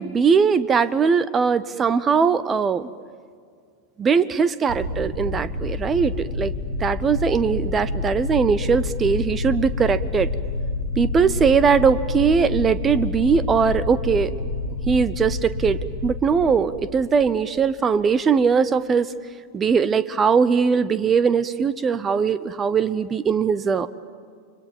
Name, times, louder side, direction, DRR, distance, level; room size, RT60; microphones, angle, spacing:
voice 1, 0.0-2.9 4.0-6.5 6.8-10.3 11.0-14.3 14.9-19.1 19.5-23.9, right 6 dB, 20° right, 16 dB, 0.8 m, -20 dB
sound 1, 4.7-17.7, left 2 dB, 55° right, 4.7 m, -28 dB
30.0 x 25.0 x 7.3 m, 2.1 s
figure-of-eight pair, 90°, 0 cm